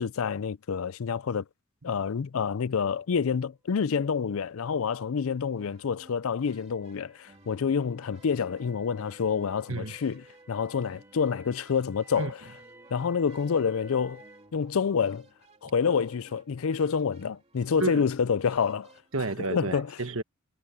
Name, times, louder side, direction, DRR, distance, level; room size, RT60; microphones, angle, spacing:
voice 1, 0.0-1.5 1.8-10.2 10.5-12.4 12.9-14.2 14.5-15.3 15.6-18.9 19.5-19.9, left 6 dB, 65° left, 0.4 m, -28 dB
sound 1, 4.6-14.6, right 2 dB, 10° right, 2.0 m, -56 dB
sound 2, 5.5-19.3, right 2 dB, 30° right, 2.9 m, -59 dB
voice 2, 19.1-20.2, right 3 dB, 65° right, 1.5 m, -31 dB
head